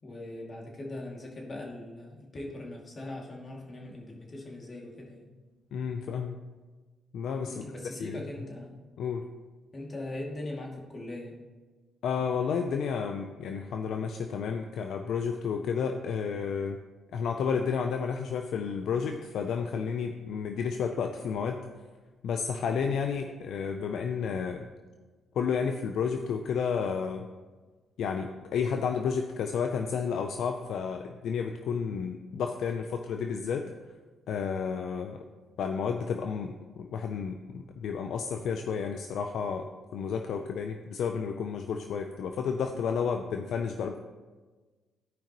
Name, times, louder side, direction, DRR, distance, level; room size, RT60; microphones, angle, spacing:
voice 1, 0.0-5.3 7.5-8.8 9.7-11.4, left 1 dB, 40° left, -1 dB, 2.3 m, -40 dB
voice 2, 5.7-6.3 7.1-7.6 8.0-8.2 9.0-9.2 12.0-16.8 17.1-21.6 22.2-24.7 25.3-27.3 28.0-33.7 34.3-35.2 35.6-44.0, left 6 dB, 70° left, 5 dB, 0.5 m, -31 dB
14.0 x 5.1 x 3.0 m, 1.3 s
supercardioid pair, 60°, 0 cm